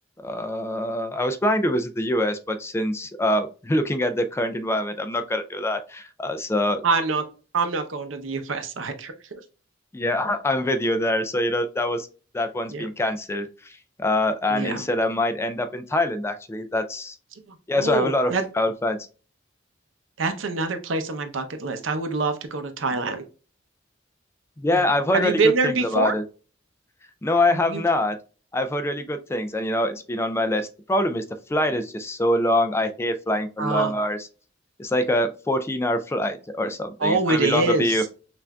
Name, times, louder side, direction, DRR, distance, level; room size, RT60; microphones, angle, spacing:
voice 1, 0.2-6.8 9.9-12.1 12.3-17.2 17.7-19.0 24.6-26.2 27.2-28.2 28.5-31.2 31.5-34.3 34.8-38.0, left 1 dB, 15° left, 9 dB, 0.3 m, -24 dB
voice 2, 6.8-7.2 7.5-9.1 12.7-12.9 14.5-14.8 17.8-18.4 20.2-23.2 24.7-24.9 25.1-26.1 27.5-27.8 33.6-33.9 37.0-38.0, right 3 dB, 80° right, 8 dB, 0.7 m, -25 dB
5.6 x 2.5 x 2.2 m, 0.36 s
head